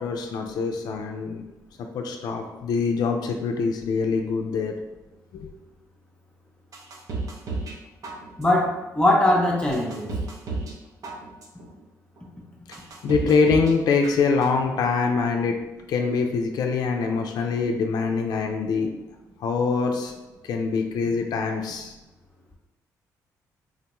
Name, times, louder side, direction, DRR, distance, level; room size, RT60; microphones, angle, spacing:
voice 1, 0.0-1.4 1.9-4.7 5.3-5.5 13.0-15.6 15.9-18.9 19.4-20.1 20.5-21.9, left 4 dB, 65° left, 3 dB, 0.4 m, -24 dB
sound 1, 6.7-7.8 8.0-8.7 9.2-9.3 9.7-10.8 11.0-11.7 12.2-12.3 12.7-13.7 14.0-14.7 15.0-15.1, right 3 dB, 50° right, 0.6 m, -32 dB
voice 2, 8.4-10.1, left 1 dB, 15° left, -2 dB, 0.6 m, -21 dB
3.8 x 2.1 x 2.9 m, 1.1 s
supercardioid pair, 65°, 7 cm